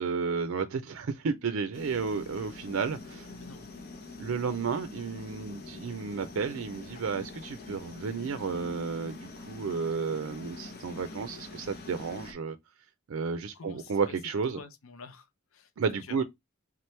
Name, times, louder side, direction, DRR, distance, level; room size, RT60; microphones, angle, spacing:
voice 1, 0.0-3.3 4.2-12.6 13.1-14.6 15.8-16.2, right 5 dB, 90° right, 0.4 m, -32 dB
sound 1, 1.7-12.3, left 3 dB, 50° left, 1.0 m, -45 dB
voice 2, 3.3-3.7 13.5-14.2 14.5-16.2, left 4 dB, 85° left, 0.6 m, -48 dB
3.6 x 3.0 x 3.1 m
head